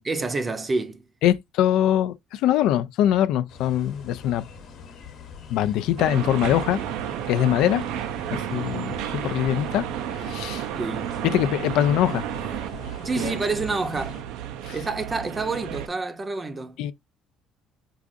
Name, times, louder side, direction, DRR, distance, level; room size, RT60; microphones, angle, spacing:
voice 1, 0.0-1.0 10.8-11.1 13.0-14.2 14.7-16.8, right 3 dB, 20° right, 0.6 m, -28 dB
voice 2, 1.2-4.5 5.5-6.8 7.3-7.8 8.3-9.8 10.2-10.7 11.2-12.3 13.2-13.3 14.6-14.8 16.8-16.9, left 11 dB, 75° left, 0.4 m, -23 dB
sound 1, 3.5-14.2, left 6 dB, 60° left, 0.9 m, -44 dB
sound 2, 6.0-15.9, right 10 dB, 80° right, 0.4 m, -32 dB
4.8 x 2.4 x 2.5 m
cardioid pair, 125°, 0 cm